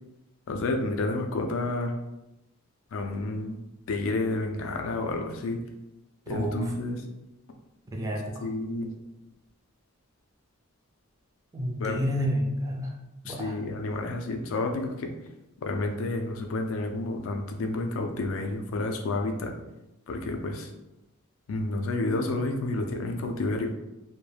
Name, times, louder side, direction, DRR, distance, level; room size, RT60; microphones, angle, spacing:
voice 1, 0.5-1.9 2.9-3.6 3.9-5.6 6.3-7.0 8.4-8.9 11.8-12.0 13.3-15.1 15.6-19.5 20.1-20.7 21.5-23.7, left 2 dB, 65° left, 4 dB, 0.4 m, -30 dB
voice 2, 6.3-6.7 7.9-8.4 11.5-13.0 13.2-13.6, equal, 15° right, -1 dB, 0.4 m, -30 dB
2.3 x 2.1 x 3.1 m, 0.94 s
head